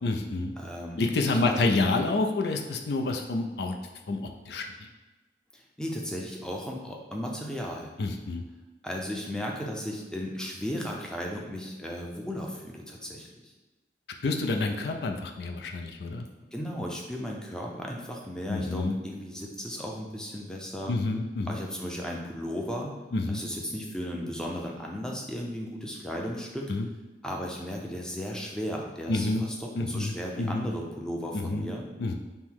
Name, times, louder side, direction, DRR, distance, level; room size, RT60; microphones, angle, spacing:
voice 1, 0.0-0.6 1.0-3.8 4.1-4.6 8.0-8.4 14.2-16.3 18.5-18.9 20.9-21.6 23.1-23.4 26.7-26.9 29.1-29.4 29.8-30.7 31.3-31.7 32.0-32.1, left 2 dB, 65° left, 4 dB, 0.4 m, -28 dB
voice 2, 0.6-1.0 1.3-1.7 5.5-7.9 8.8-13.5 16.5-20.9 21.5-22.9 23.3-26.7 27.2-31.8, equal, 5° left, -1 dB, 0.5 m, -35 dB
5.4 x 2.1 x 4.5 m, 1.2 s
head